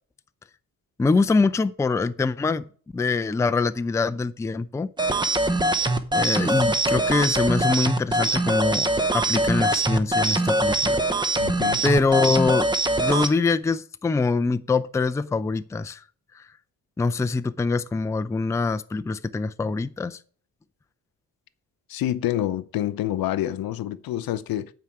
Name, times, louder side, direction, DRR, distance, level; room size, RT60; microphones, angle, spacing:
voice 1, 1.0-2.6 2.9-4.9 6.1-11.0 11.8-12.7 13.0-16.0 16.3-16.4 17.0-20.2, left 4 dB, 10° left, 0.4 m, -24 dB
sound 1, 5.0-13.3, right 1 dB, 15° right, 0.8 m, -23 dB
voice 2, 11.4-11.8 21.9-24.7, left 13 dB, 80° left, 0.7 m, -27 dB
9.2 x 4.8 x 7.7 m
cardioid pair, 115°, 36 cm